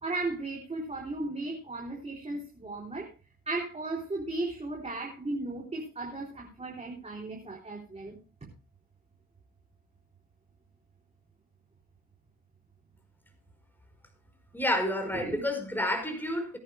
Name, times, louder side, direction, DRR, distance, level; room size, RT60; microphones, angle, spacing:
voice 1, 0.0-3.1 3.5-8.2 15.1-15.5, right 2 dB, 20° right, -1 dB, 3.7 m, -35 dB
voice 2, 14.5-16.6, left 1 dB, 5° left, 5 dB, 5.0 m, -29 dB
23.0 x 9.9 x 2.2 m, 0.32 s
cardioid pair, 90°, 30 cm